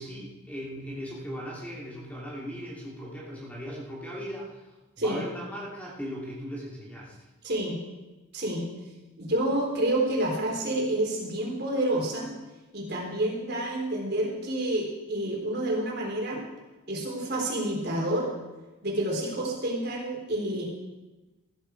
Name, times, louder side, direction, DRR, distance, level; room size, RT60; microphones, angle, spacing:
voice 1, 0.0-4.6 5.0-7.2, equal, 5° left, -5 dB, 2.9 m, -38 dB
voice 2, 7.4-7.8 8.3-8.7 9.2-12.3 12.7-16.4 16.9-18.3 18.8-20.6, right 1 dB, 50° right, -2 dB, 4.0 m, -28 dB
15.0 x 13.0 x 4.7 m, 1.1 s
head